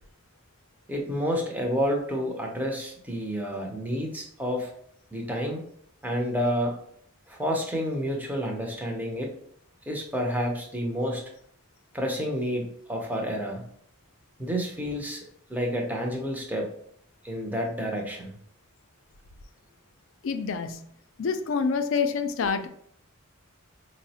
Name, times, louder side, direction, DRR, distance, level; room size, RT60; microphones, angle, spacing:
voice 1, 0.9-4.7 5.1-5.6 6.0-6.7 7.3-9.3 9.9-11.2 11.9-13.7 14.4-15.2 15.5-16.7 17.2-18.3, equal, 10° right, 0 dB, 0.5 m, -29 dB
voice 2, 20.2-20.8 21.2-22.7, left 5 dB, 65° left, 8 dB, 0.4 m, -27 dB
4.7 x 2.0 x 2.7 m, 0.65 s
head